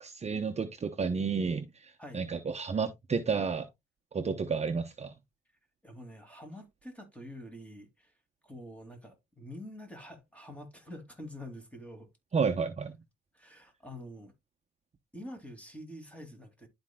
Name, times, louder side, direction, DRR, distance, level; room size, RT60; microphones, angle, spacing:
voice 1, 0.0-1.7 2.1-3.7 4.1-5.1 12.3-13.0, right 5 dB, 35° right, 0.8 m, -31 dB
voice 2, 5.8-8.1 8.4-12.1 13.3-14.3 15.1-16.7, left 1 dB, 5° left, 2.5 m, -46 dB
11.5 x 4.3 x 2.3 m
cardioid pair, 90°, 20 cm